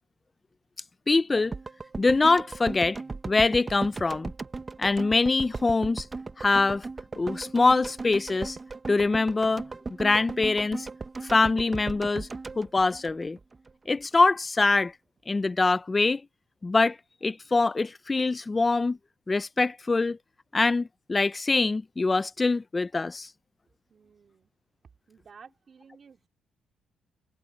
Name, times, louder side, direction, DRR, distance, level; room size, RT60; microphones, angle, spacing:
voice 1, 1.1-1.6 2.0-3.0 3.3-4.3 4.8-6.1 6.4-6.9 7.2-8.6 8.9-9.6 10.0-10.9 11.3-12.3 12.6-13.4 13.9-14.9 15.3-16.2 16.6-17.0 17.2-19.0 19.3-20.2 20.5-23.3, left 3 dB, 25° left, 0.6 m, -24 dB
sound 1, 1.5-13.7 14.0-14.1, right 3 dB, 25° right, 0.9 m, -37 dB
voice 2, 23.9-24.5 25.1-26.3, right 6 dB, 45° right, 4.4 m, -53 dB
cardioid pair, 90°, 0 cm